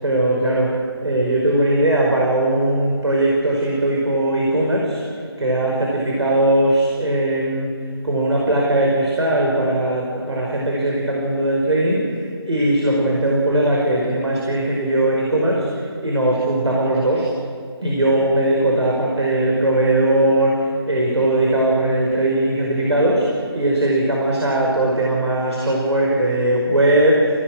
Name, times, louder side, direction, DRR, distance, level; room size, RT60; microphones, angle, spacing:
voice 1, 0.0-5.0 5.4-17.3 17.8-27.4, right 1 dB, 80° right, -2 dB, 5.4 m, -19 dB
29.5 x 18.0 x 6.5 m, 2.2 s
figure-of-eight pair, 175°, 14 cm